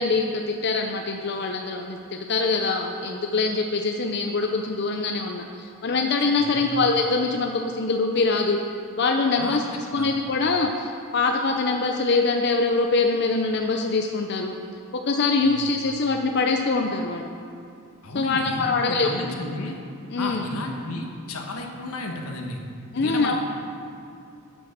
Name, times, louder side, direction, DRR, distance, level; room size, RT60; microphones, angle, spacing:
voice 1, 0.0-2.0 2.3-8.6 9.0-9.6 9.9-14.6 15.1-17.3 18.1-19.1 20.1-20.4 22.9-23.4, left 3 dB, 50° left, 3 dB, 0.5 m, -23 dB
voice 2, 6.4-6.7 9.4-10.1 15.4-15.7 18.0-19.8 20.2-22.6 22.9-23.4, left 2 dB, 85° left, 2 dB, 1.3 m, -33 dB
10.5 x 6.2 x 6.5 m, 2.4 s
head